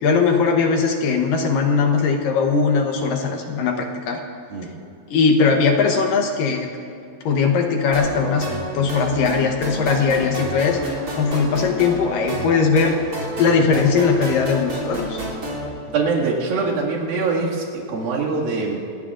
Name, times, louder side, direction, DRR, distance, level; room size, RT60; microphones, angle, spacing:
voice 1, 0.0-4.2 5.1-6.7 7.2-8.5 8.7-10.8 11.2-13.0 13.4-15.2, left 5 dB, 70° left, 3 dB, 2.6 m, -19 dB
sound 1, 7.9-15.7, right 1 dB, 25° right, 3.2 m, -29 dB
voice 2, 15.9-18.8, right 4 dB, 75° right, -4 dB, 3.9 m, -23 dB
29.5 x 19.5 x 2.5 m, 2.6 s
omnidirectional pair, 4.2 m